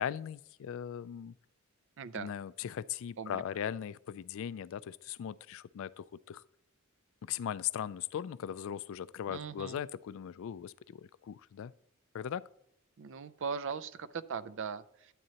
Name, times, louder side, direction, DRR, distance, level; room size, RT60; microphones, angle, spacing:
voice 1, 0.0-1.3 2.1-6.4 7.2-11.7 12.1-12.4, left 9 dB, 65° left, 18 dB, 0.3 m, -39 dB
voice 2, 2.0-2.3 3.2-3.4 9.3-9.8 13.0-15.1, right 6 dB, 60° right, 16 dB, 0.5 m, -39 dB
12.5 x 8.8 x 2.9 m, 0.78 s
head